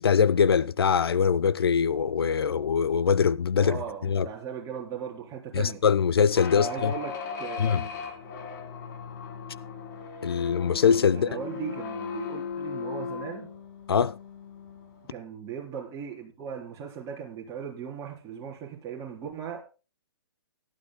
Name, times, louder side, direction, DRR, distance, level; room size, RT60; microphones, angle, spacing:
voice 1, 0.0-4.3 5.5-6.9 7.6-7.8 10.2-11.3 13.9-14.2, left 6 dB, 65° left, 0.6 m, -23 dB
voice 2, 3.6-5.8 6.5-7.9 11.1-13.5 15.0-19.6, right 7 dB, 25° right, 3.8 m, -38 dB
sound 1, 6.3-15.1, left 7 dB, 45° left, 3.4 m, -37 dB
17.5 x 12.0 x 2.2 m
figure-of-eight pair, 125°, 14 cm